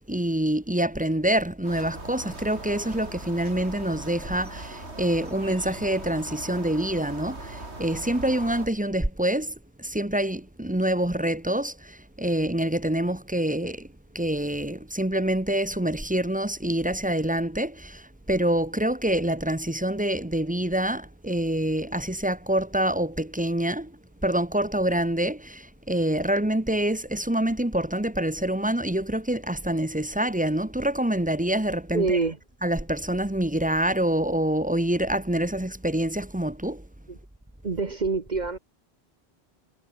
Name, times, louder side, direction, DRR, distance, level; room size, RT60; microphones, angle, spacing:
voice 1, 0.1-13.9 14.1-23.9 24.2-32.2 32.6-36.8, right 1 dB, 10° right, 1.3 m, -26 dB
sound 1, 1.6-8.7, right 2 dB, 85° right, 4.7 m, -40 dB
voice 2, 31.9-32.4 37.1-37.2 37.6-38.6, right 4 dB, 45° right, 1.3 m, -26 dB
omnidirectional pair, 1.1 m